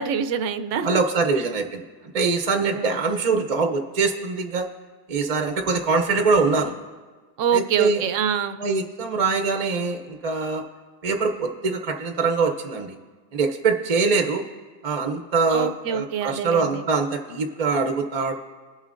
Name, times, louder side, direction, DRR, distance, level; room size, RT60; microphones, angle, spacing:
voice 1, 0.0-1.0 1.4-1.5 2.6-3.0 3.3-3.4 7.4-8.6 15.5-16.9, right 7 dB, 80° right, 9 dB, 0.9 m, -26 dB
voice 2, 0.8-4.7 5.1-6.7 7.5-8.0 8.6-10.6 11.0-13.0 13.3-14.4 14.8-18.3, right 4 dB, 40° right, 5 dB, 0.6 m, -23 dB
20.0 x 7.3 x 2.5 m, 1.4 s
omnidirectional pair, 1.3 m